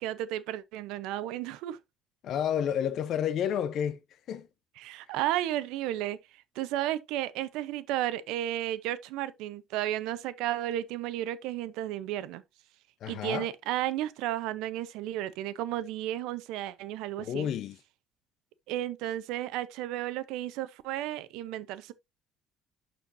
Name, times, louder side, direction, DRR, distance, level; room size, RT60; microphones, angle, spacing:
voice 1, 0.0-1.8 4.8-6.2 6.5-12.4 13.1-17.5 18.7-21.9, right 13 dB, 80° right, 0.7 m, -33 dB
voice 2, 2.2-4.0 4.3-4.5 13.0-13.5 17.2-17.8, left 9 dB, 50° left, 0.6 m, -30 dB
11.5 x 4.4 x 2.6 m
cardioid pair, 150°, 0 cm